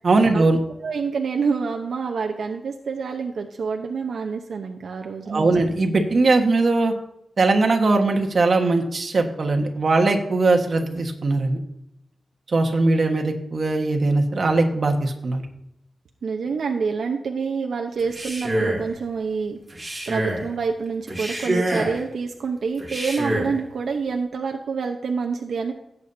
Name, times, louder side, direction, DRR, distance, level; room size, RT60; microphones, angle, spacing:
voice 1, 0.0-0.6 5.3-6.9 7.4-11.6 12.5-15.4, right 3 dB, 50° right, 3 dB, 1.4 m, -20 dB
voice 2, 0.8-5.5 16.2-19.6 20.1-25.7, right 5 dB, 80° right, 2 dB, 0.8 m, -27 dB
Male speech man speaking, 18.0-18.9 19.7-20.5 21.1-22.0 22.8-23.6, right 1 dB, 15° right, 2.7 m, -26 dB
16.5 x 8.4 x 2.7 m, 0.81 s
wide cardioid pair, 135°, 0 cm